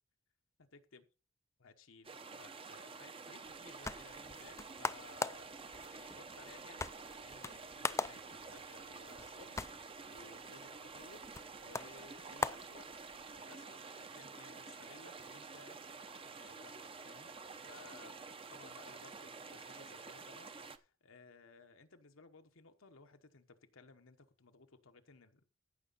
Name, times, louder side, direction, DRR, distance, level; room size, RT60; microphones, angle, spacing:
voice 1, 0.6-1.0 1.6-5.6 5.9-11.3 11.6-12.9 13.3-15.8 16.3-18.2 18.5-25.4, left 4 dB, 75° left, 1.1 m, -59 dB
sound 1, 2.0-20.8, right 4 dB, 25° right, 0.7 m, -50 dB
Blu-Ray case opening, 3.4-13.4, left 3 dB, 15° left, 0.4 m, -43 dB
train door closing tokyo, 6.9-19.8, right 3 dB, 70° right, 2.6 m, -69 dB
15.0 x 6.2 x 4.1 m
head